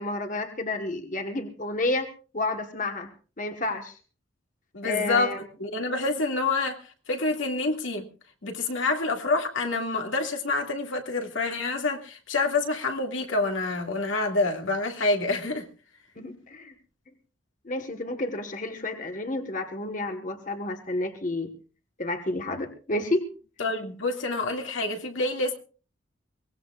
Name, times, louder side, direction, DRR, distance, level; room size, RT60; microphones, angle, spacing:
voice 1, 0.0-2.1 2.3-3.1 3.4-4.0 4.8-5.4 16.2-16.7 17.6-21.5 22.0-23.3, left 2 dB, 40° left, 1.3 m, -30 dB
voice 2, 4.7-5.3 5.6-8.0 8.4-15.7 23.6-25.6, left 3 dB, 80° left, 2.2 m, -27 dB
23.0 x 18.5 x 2.4 m
head